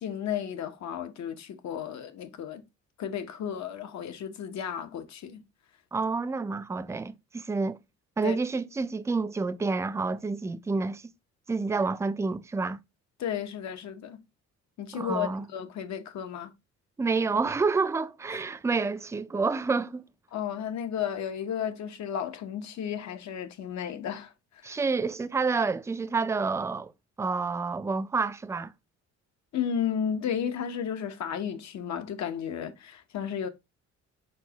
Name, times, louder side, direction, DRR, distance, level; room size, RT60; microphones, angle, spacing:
voice 1, 0.0-2.6 3.0-5.4 8.2-8.4 13.2-14.2 14.8-16.5 20.3-24.8 29.5-33.5, left 8 dB, 65° left, 0.9 m, -33 dB
voice 2, 5.9-7.8 8.2-11.0 11.5-12.8 14.9-15.4 17.0-20.0 24.6-26.9 27.2-28.7, right 4 dB, 10° right, 0.3 m, -28 dB
4.6 x 4.1 x 2.8 m
cardioid pair, 90°, 30 cm